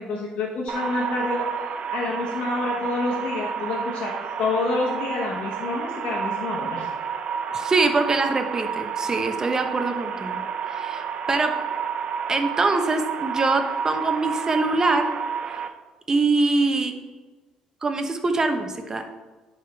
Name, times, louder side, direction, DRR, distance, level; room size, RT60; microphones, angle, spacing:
voice 1, 0.0-1.5 1.9-4.1 4.4-6.9, left 3 dB, 65° left, -4 dB, 1.2 m, -27 dB
sound 1, 0.7-15.7, right 7 dB, 55° right, 0.5 m, -30 dB
voice 2, 7.5-11.5 12.3-15.1 15.5-15.7 16.1-17.0 17.8-19.1, right 3 dB, 30° right, 6 dB, 0.8 m, -24 dB
11.0 x 3.6 x 3.3 m, 1.2 s
cardioid pair, 95°, 2 cm